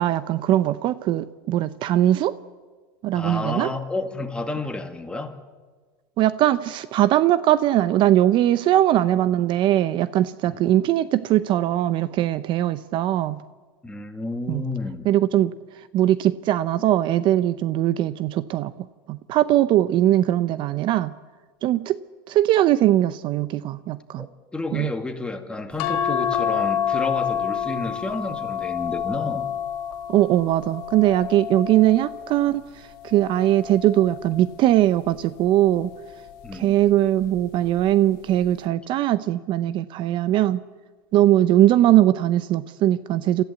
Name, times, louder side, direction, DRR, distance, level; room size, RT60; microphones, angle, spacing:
voice 1, 0.0-2.3 3.0-3.7 6.2-13.4 14.5-14.6 15.1-15.5 15.9-18.7 19.1-21.1 21.6-22.0 22.3-24.3 24.7-24.9 30.1-32.6 33.0-35.9 36.5-40.6 41.1-43.4, right 13 dB, 45° right, 15 dB, 0.7 m, -20 dB
voice 2, 3.1-5.4 13.8-15.1 24.2-24.3 24.5-29.5 36.4-36.8, left 2 dB, 10° left, 5 dB, 2.2 m, -30 dB
sound 1, 25.8-32.4 33.1-34.5 35.7-36.1 36.5-36.6, left 8 dB, 65° left, 1.7 m, -28 dB
27.5 x 14.5 x 8.1 m, 1.4 s
supercardioid pair, 110°, 12 cm